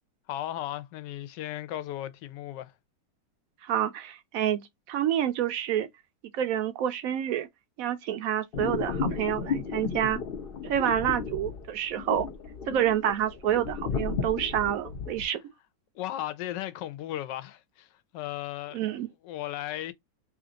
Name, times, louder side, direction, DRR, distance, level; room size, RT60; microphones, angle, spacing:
voice 1, 0.3-2.7 15.9-18.8 19.2-19.9, left 13 dB, 80° left, 1.2 m, -36 dB
voice 2, 3.6-5.9 6.3-7.5 7.8-10.2 10.6-12.3 12.7-15.4 18.7-19.1, right 10 dB, 70° right, 0.8 m, -28 dB
sound 1, 8.5-15.2, left 5 dB, 65° left, 0.5 m, -33 dB
3.3 x 2.5 x 3.8 m
omnidirectional pair, 1.9 m